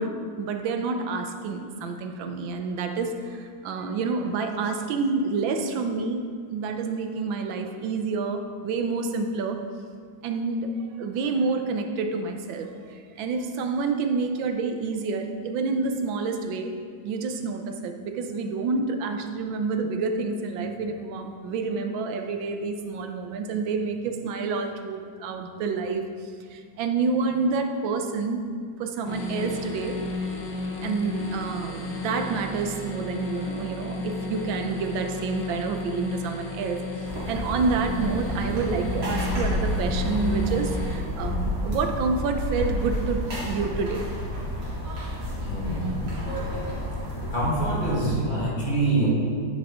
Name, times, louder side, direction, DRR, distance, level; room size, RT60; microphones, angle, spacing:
voice 1, 0.0-6.2 6.5-9.6 10.2-16.8 17.0-28.4 28.8-30.0 30.8-36.8 37.3-44.1, right 4 dB, 80° right, 6 dB, 1.5 m, -28 dB
sound 1, 29.0-40.9, left 2 dB, 70° left, 1.8 m, -33 dB
sound 2, 37.0-48.2, equal, 60° right, 2.8 m, -32 dB
sound 3, 38.9-44.1, left 1 dB, 50° left, 0.9 m, -31 dB
voice 2, 45.3-46.5 47.3-49.1, right 2 dB, 25° left, -6 dB, 1.9 m, -26 dB
9.7 x 7.8 x 3.7 m, 2.1 s
omnidirectional pair, 2.1 m